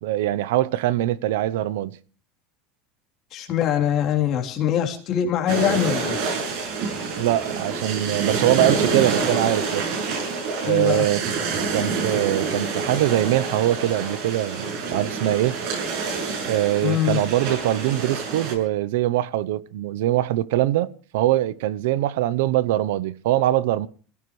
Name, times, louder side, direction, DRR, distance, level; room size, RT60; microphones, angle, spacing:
voice 1, 0.0-1.9 7.2-9.9 10.6-11.2 11.7-15.8 16.5-23.9, right 14 dB, 85° right, 0.7 m, -23 dB
voice 2, 3.3-6.2 10.6-11.0 16.8-17.2, left 10 dB, 35° left, 3.2 m, -23 dB
sound 1, 5.5-18.6, right 4 dB, 55° right, 6.9 m, -27 dB
27.5 x 16.0 x 3.2 m
cardioid pair, 165°, 0 cm